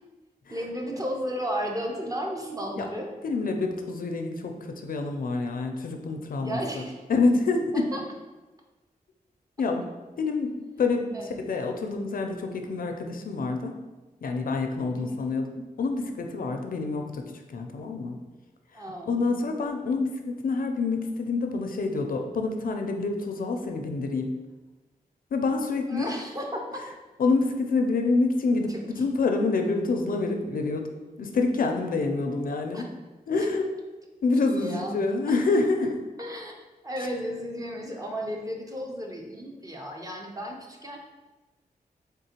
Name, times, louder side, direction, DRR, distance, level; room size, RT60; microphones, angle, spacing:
voice 1, 0.5-3.1 6.4-7.0 7.9-8.0 11.1-11.3 15.0-15.3 18.7-19.4 25.9-26.8 28.7-28.8 32.7-32.9 34.5-35.0 36.2-36.5 36.8-41.0, equal, 25° right, 0 dB, 0.6 m, -34 dB
voice 2, 3.2-6.8 7.1-7.9 9.6-13.8 14.2-18.2 18.7-24.4 25.3-26.1 27.2-30.9 31.2-32.9 33.3-33.7 34.2-36.0, left 3 dB, 65° left, 4 dB, 0.4 m, -27 dB
3.6 x 3.6 x 2.9 m, 1.2 s
wide cardioid pair, 95°, 15 cm